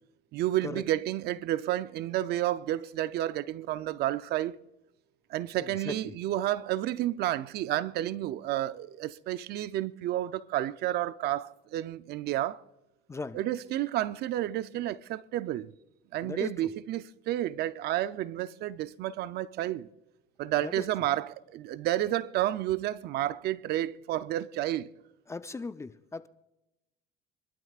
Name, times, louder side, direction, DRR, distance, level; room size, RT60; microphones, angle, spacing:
voice 1, 0.3-4.6 5.3-12.6 13.3-15.7 16.1-19.9 20.4-24.9, right 13 dB, 55° right, 0.6 m, -31 dB
voice 2, 16.2-16.5 20.8-20.9 25.3-26.3, left 3 dB, 15° left, 0.5 m, -37 dB
25.5 x 12.5 x 2.4 m
supercardioid pair, 110°, 19 cm